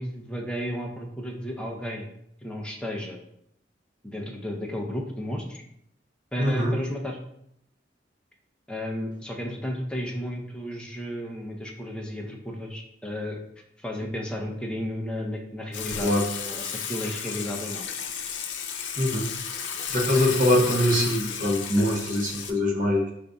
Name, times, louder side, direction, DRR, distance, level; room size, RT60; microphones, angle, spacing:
voice 1, 0.0-2.1 2.4-3.2 4.0-5.6 6.3-7.2 8.7-13.4 13.8-16.1 16.4-17.9, equal, 5° left, 0 dB, 0.6 m, -33 dB
voice 2, 6.4-6.8 16.0-16.3 19.0-19.3 19.9-23.1, left 1 dB, 50° right, 1 dB, 0.9 m, -23 dB
Water / Water tap faucet / Sink (filling or washing), 15.7-22.5, left 7 dB, 85° left, 0.6 m, -33 dB
5.1 x 2.6 x 3.5 m, 0.74 s
head